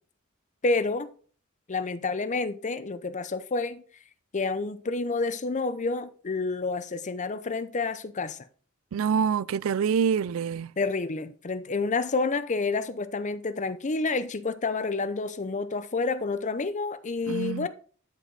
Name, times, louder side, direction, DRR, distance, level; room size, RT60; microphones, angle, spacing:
voice 1, 0.6-1.1 1.7-3.8 4.3-8.4 10.8-17.7, left 3 dB, 35° left, 0.6 m, -29 dB
voice 2, 8.9-10.7 17.3-17.7, right 7 dB, 75° right, 0.3 m, -26 dB
11.0 x 5.0 x 3.9 m
head